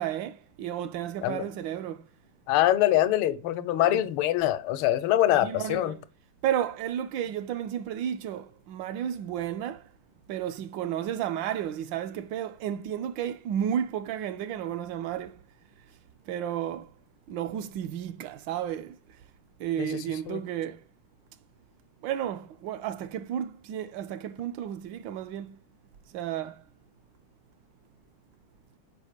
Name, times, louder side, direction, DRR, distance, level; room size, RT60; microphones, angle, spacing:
voice 1, 0.0-2.0 3.8-4.0 5.3-6.0 6.4-9.9 10.3-15.4 16.3-16.9 17.3-19.0 19.6-20.8 22.0-25.6 26.1-26.6, right 10 dB, 75° right, 1.1 m, -32 dB
voice 2, 2.5-6.0 19.8-20.4, left 13 dB, 85° left, 1.5 m, -24 dB
5.2 x 5.0 x 6.5 m
omnidirectional pair, 2.4 m